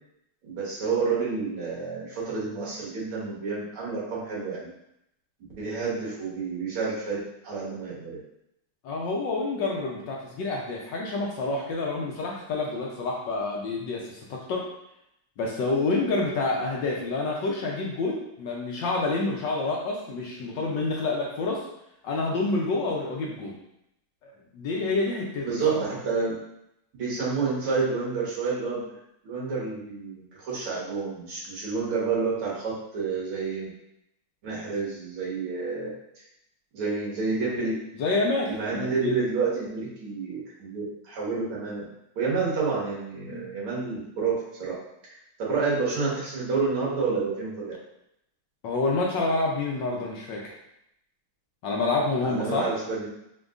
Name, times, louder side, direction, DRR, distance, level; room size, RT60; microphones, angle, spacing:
voice 1, 0.4-4.7 5.6-7.2 7.4-8.2 25.4-26.3 26.9-28.9 29.2-33.7 34.4-35.9 36.7-37.8 38.5-41.8 42.2-44.3 44.6-44.7 45.0-47.7 52.2-53.1, right 4 dB, 80° right, -6 dB, 2.2 m, -29 dB
voice 2, 8.8-14.7 15.4-21.7 22.0-23.6 24.2-25.8 38.0-39.1 43.3-43.5 48.6-50.5 51.6-52.7, left 3 dB, 70° left, -2 dB, 1.2 m, -28 dB
6.1 x 2.7 x 2.4 m, 0.79 s
omnidirectional pair, 2.4 m